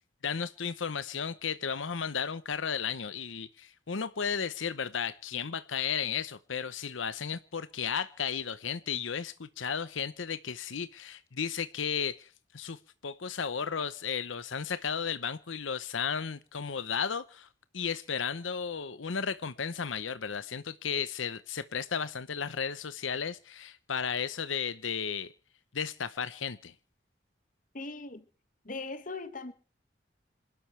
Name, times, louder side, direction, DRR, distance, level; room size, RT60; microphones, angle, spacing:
voice 1, 0.2-17.5 17.7-25.3 25.7-26.7, left 6 dB, 85° left, 0.8 m, -34 dB
voice 2, 27.7-28.3 28.7-29.5, left 3 dB, 45° left, 1.7 m, -39 dB
27.0 x 12.0 x 3.3 m
head